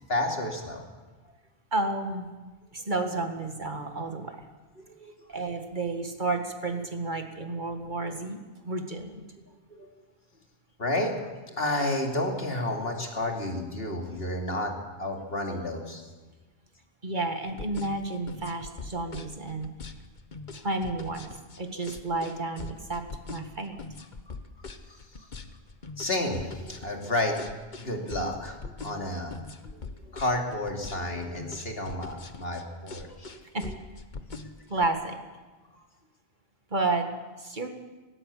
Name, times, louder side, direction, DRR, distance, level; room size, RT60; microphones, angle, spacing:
voice 1, 0.1-0.8 5.0-5.1 9.8-9.9 10.8-11.2 11.5-14.7 15.0-16.0 26.0-27.4 27.8-29.4 29.6-29.8 30.1-33.4, left 1 dB, 65° left, 2 dB, 3.0 m, -31 dB
voice 2, 1.7-2.3 2.7-4.5 5.3-9.2 17.0-19.7 20.5-21.3 21.6-23.8 33.5-33.7 34.7-35.2 36.7-37.1 37.4-37.7, right 2 dB, 45° right, 5 dB, 2.1 m, -31 dB
sound 1, 17.5-34.9, left 4 dB, 45° left, 1.3 m, -42 dB
19.0 x 18.0 x 8.4 m, 1.2 s
omnidirectional pair, 1.1 m